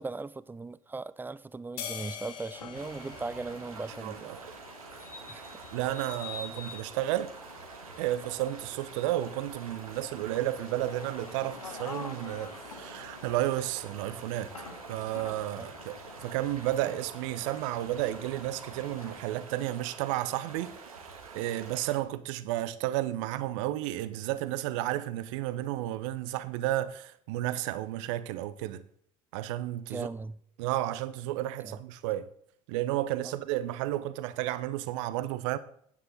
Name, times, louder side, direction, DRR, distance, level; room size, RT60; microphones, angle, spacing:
voice 1, 0.0-4.3 5.3-5.5 15.6-15.7 29.9-30.4 31.6-31.8 33.2-33.4, right 3 dB, 10° right, 0.4 m, -38 dB
sound 1, 1.8-4.4, left 9 dB, 65° left, 1.3 m, -43 dB
sound 2, 2.5-19.2, left 4 dB, 85° left, 0.9 m, -47 dB
sound 3, 2.7-22.0, right 5 dB, 80° right, 1.6 m, -47 dB
voice 2, 4.0-4.4 5.7-7.3 8.0-14.5 14.9-20.7 21.3-28.8 29.3-30.1 30.6-32.3 32.7-35.6, right 14 dB, 60° right, 0.7 m, -32 dB
10.0 x 9.0 x 4.0 m
figure-of-eight pair, 65°, 18 cm